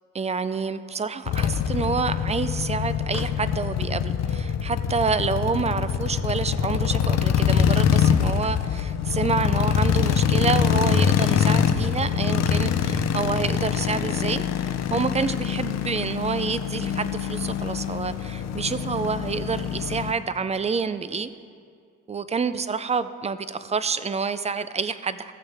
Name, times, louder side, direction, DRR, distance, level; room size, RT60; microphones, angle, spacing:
voice 1, 0.1-21.3 22.1-25.3, right 5 dB, 20° right, 13 dB, 0.4 m, -28 dB
sound 1, 1.3-20.1, left 8 dB, 60° left, 0.6 m, -24 dB
15.5 x 7.0 x 3.4 m, 2.2 s
cardioid pair, 90°, 30 cm